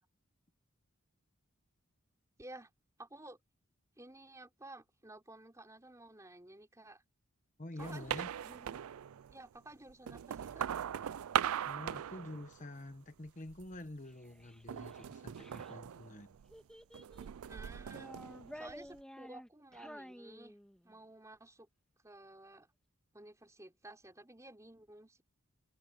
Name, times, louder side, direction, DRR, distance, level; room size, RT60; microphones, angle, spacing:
voice 1, 2.4-2.7 3.0-3.4 4.0-7.0 7.8-8.8 9.3-10.6 17.4-18.1 18.5-20.6 20.8-21.7 22.0-22.7 23.1-25.2, right 2 dB, 15° right, 3.7 m, -53 dB
voice 2, 7.6-8.3 11.7-16.3, left 1 dB, 35° left, 1.2 m, -47 dB
sound 1, 7.8-9.4 9.9-12.9 13.3-13.9 14.7-16.6 16.9-19.0, right 9 dB, 85° right, 0.4 m, -40 dB
Child speech kid speaking, 14.1-15.7 16.5-17.4 17.8-21.0, equal, 5° left, 2.9 m, -52 dB
head